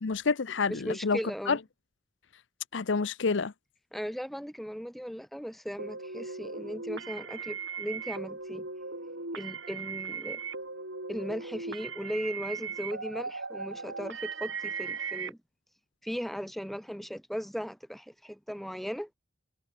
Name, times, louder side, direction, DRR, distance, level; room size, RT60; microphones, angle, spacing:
voice 1, 0.0-1.2 1.5-1.6 2.7-3.5, left 4 dB, 60° left, 0.6 m, -28 dB
voice 2, 0.7-1.6 3.9-8.7 9.3-10.4 11.1-15.4 16.0-19.1, equal, ahead, 3.1 m, -37 dB
sound 1, 5.8-15.3, right 5 dB, 65° right, 7.2 m, -38 dB
head